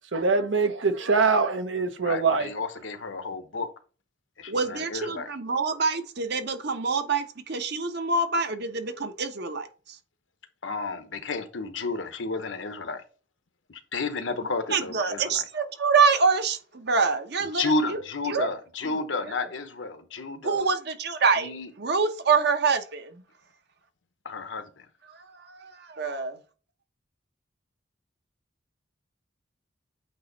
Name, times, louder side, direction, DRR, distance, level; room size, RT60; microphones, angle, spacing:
voice 1, 0.1-2.5, right 4 dB, 85° right, 1.0 m, -23 dB
voice 2, 2.0-3.7 4.4-5.3 10.6-13.0 13.7-15.4 17.5-20.6 21.4-21.7 24.2-24.8, left 3 dB, 85° left, 1.0 m, -32 dB
voice 3, 4.5-10.0 14.7-18.0 18.3-18.5 18.9-19.0 20.4-21.5 21.8-23.2 25.1-26.4, right 4 dB, 60° right, 0.9 m, -26 dB
8.4 x 2.9 x 4.1 m
head